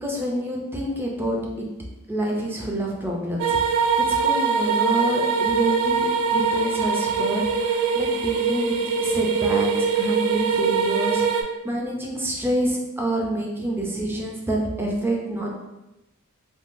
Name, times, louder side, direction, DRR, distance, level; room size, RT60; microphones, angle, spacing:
voice 1, 0.0-1.7 2.1-3.8 4.2-11.2 11.6-15.6, right 1 dB, 10° right, -2 dB, 0.5 m, -27 dB
sound 1, 3.4-11.4, right 5 dB, 70° right, 0.4 m, -22 dB
3.5 x 2.3 x 2.6 m, 0.98 s
head